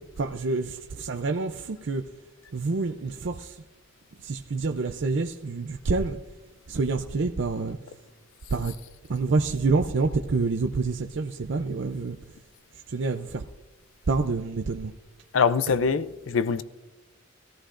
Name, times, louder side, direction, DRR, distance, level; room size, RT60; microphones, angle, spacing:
voice 1, 0.2-2.0 2.5-3.6 4.2-6.2 6.7-7.8 8.5-8.7 9.1-12.2 12.9-13.4 14.1-14.9, right 3 dB, 65° right, 0.5 m, -27 dB
voice 2, 15.3-16.6, left 5 dB, 70° left, 0.5 m, -23 dB
20.0 x 14.0 x 2.5 m
head